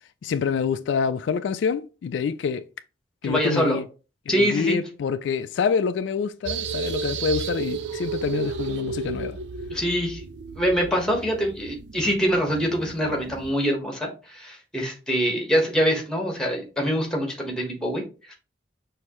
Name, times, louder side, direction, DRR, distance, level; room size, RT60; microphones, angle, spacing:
voice 1, 0.2-2.6 3.2-3.8 4.3-9.4, left 6 dB, 80° left, 0.3 m, -26 dB
voice 2, 3.2-3.8 4.3-4.8 9.7-10.2 10.5-18.3, equal, 5° left, 1.3 m, -24 dB
sound 1, 6.5-13.5, right 5 dB, 70° right, 0.4 m, -33 dB
6.2 x 2.8 x 3.0 m
head